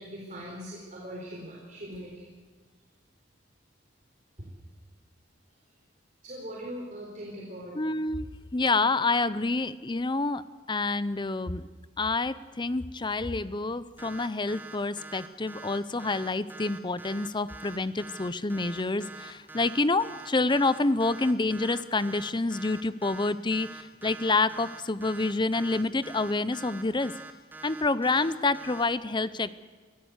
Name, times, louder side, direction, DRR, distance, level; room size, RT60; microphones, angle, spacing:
voice 1, 0.0-2.2 4.4-4.5 6.2-7.8, equal, 40° right, -4 dB, 4.2 m, -40 dB
voice 2, 7.7-10.4 10.7-11.7 12.0-27.1 27.6-29.5, left 3 dB, 25° left, 15 dB, 0.7 m, -28 dB
sound 1, 14.0-28.8, right 3 dB, 10° right, 1.8 m, -45 dB
24.5 x 16.0 x 8.1 m, 1.5 s
head